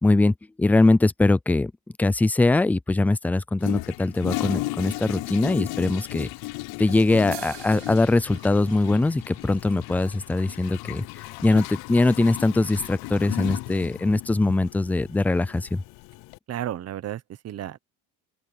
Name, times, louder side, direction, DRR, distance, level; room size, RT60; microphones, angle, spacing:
voice 1, 0.0-1.7 2.0-6.3 6.8-11.0 11.4-15.8, left 2 dB, 5° left, 0.3 m, -22 dB
Toilet flush, 3.6-16.4, left 22 dB, 70° left, 0.7 m, -35 dB
sound 1, 7.3-10.9, right 19 dB, 85° right, 2.7 m, -47 dB
voice 2, 16.5-17.8, right 11 dB, 40° right, 1.0 m, -33 dB
open air
cardioid pair, 130°, 38 cm